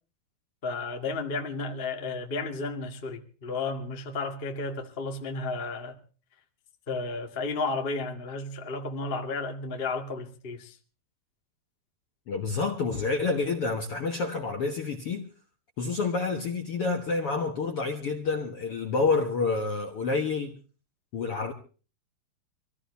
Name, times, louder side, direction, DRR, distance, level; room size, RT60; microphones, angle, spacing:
voice 1, 0.6-6.0 6.9-10.8, left 3 dB, 40° left, 0.7 m, -33 dB
voice 2, 12.3-15.2 15.8-20.6 21.1-21.5, left 4 dB, 60° left, 1.5 m, -28 dB
25.5 x 16.0 x 2.8 m
omnidirectional pair, 4.6 m